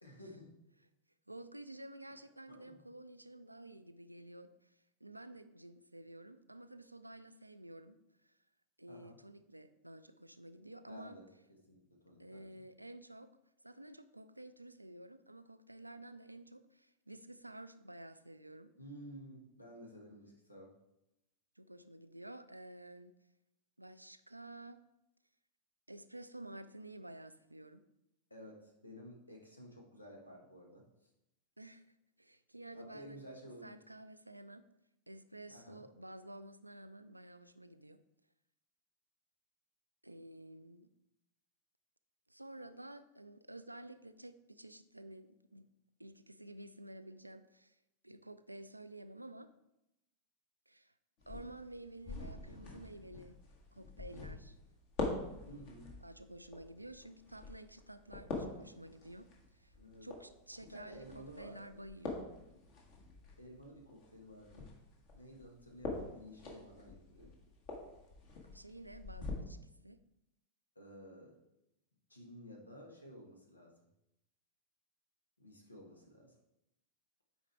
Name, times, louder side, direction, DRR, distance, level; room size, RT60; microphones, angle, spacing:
voice 1, 0.0-0.5 2.6-2.8 8.9-9.2 10.9-12.5 18.8-20.7 28.3-30.8 32.7-33.8 35.5-35.9 55.5-55.9 59.7-60.1 60.7-61.9 63.4-64.7 65.2-67.3 70.7-71.4 72.1-73.7 75.4-76.3, equal, 85° left, 1 dB, 1.4 m, -53 dB
voice 2, 1.3-8.4 8.8-11.2 12.2-13.3 13.6-18.7 21.6-23.1 23.8-24.8 25.9-27.8 31.6-31.9 32.2-34.6 35.1-38.0 40.0-40.9 42.3-45.7 46.0-47.8 48.0-49.5 50.7-50.9 51.3-53.4 53.7-54.6 56.0-59.3 59.5-59.7 60.0-62.2 68.5-70.0, right 1 dB, 85° right, 12 dB, 0.4 m, -52 dB
sound 1, 51.2-69.3, left 3 dB, 45° left, 1.7 m, -46 dB
8.6 x 4.8 x 3.4 m, 0.87 s
figure-of-eight pair, 90°, 0 cm